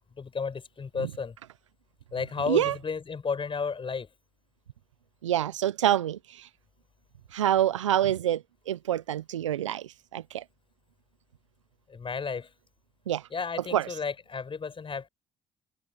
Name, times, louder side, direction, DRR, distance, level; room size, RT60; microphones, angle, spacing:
voice 1, 0.2-1.3 2.1-4.1 11.9-12.5 13.3-15.1, left 5 dB, 35° left, 7.1 m, -33 dB
voice 2, 2.4-2.8 5.2-6.5 7.3-8.4 8.7-9.8 10.1-10.4 13.1-13.2 13.6-14.0, right 12 dB, 85° right, 1.1 m, -26 dB
open air
figure-of-eight pair, 50°, 15 cm